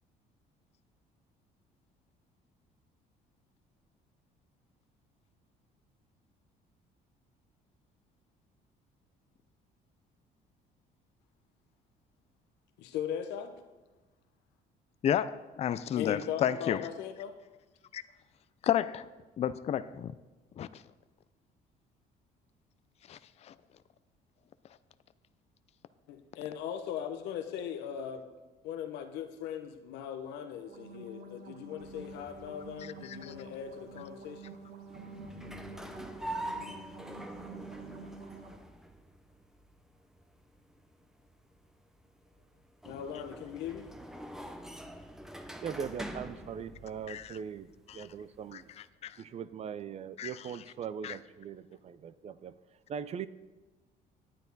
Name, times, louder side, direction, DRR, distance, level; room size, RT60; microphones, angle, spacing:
voice 1, 12.8-13.5 16.0-17.3 26.1-28.3 28.6-34.6 42.8-43.9, left 9 dB, 90° left, 7 dB, 1.0 m, -39 dB
voice 2, 15.0-16.8 17.9-18.0 18.6-19.1 19.4-20.1 20.6-20.8 23.1-23.5 32.8-33.3 47.1-47.3 47.9-48.1 48.5-49.2 50.2-50.3 51.0-51.2, left 9 dB, 40° left, 14 dB, 0.4 m, -32 dB
sound 1, 30.6-38.5, right 2 dB, 70° right, 1.3 m, -48 dB
sound 2, 31.8-48.9, right 1 dB, 5° right, 0.7 m, -46 dB
voice 3, 45.6-48.7 49.2-52.5 52.9-53.3, right 7 dB, 40° right, 15 dB, 0.4 m, -40 dB
10.0 x 9.0 x 4.0 m, 1.2 s
cardioid pair, 110°, 17 cm